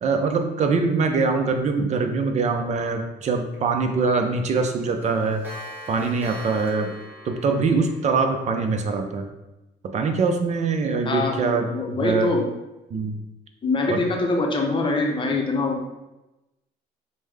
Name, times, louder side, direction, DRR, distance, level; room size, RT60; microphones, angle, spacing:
voice 1, 0.0-5.4 5.9-6.9 7.3-9.3 9.9-12.3 12.9-13.2 13.9-14.0, right 4 dB, 45° right, 5 dB, 0.6 m, -23 dB
Clock, 3.5-3.6 3.9-4.1 4.4-4.5 4.8-8.8, right 1 dB, 10° right, 1.3 m, -41 dB
voice 2, 11.1-12.4 13.6-15.9, left 3 dB, 30° left, 1 dB, 0.7 m, -24 dB
5.2 x 2.1 x 3.3 m, 0.99 s
cardioid pair, 110°, 17 cm